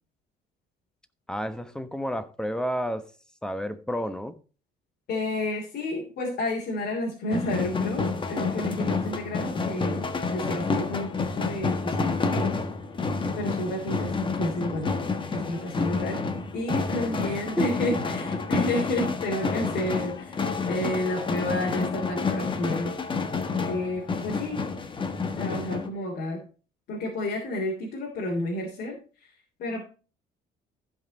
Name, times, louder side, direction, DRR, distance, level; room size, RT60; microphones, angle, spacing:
voice 1, 1.3-3.1 3.4-4.4 17.2-17.7 18.4-18.5, equal, 5° left, 1.1 m, -31 dB
voice 2, 5.1-12.6 13.3-14.9 15.3-16.2 16.5-22.9 23.6-24.8 25.4-26.4 26.9-29.3 29.6-29.9, left 1 dB, 65° left, 3.2 m, -31 dB
sound 1, 7.3-25.9, left 4 dB, 30° left, 1.4 m, -29 dB
15.0 x 5.6 x 4.2 m
cardioid pair, 110°, 17 cm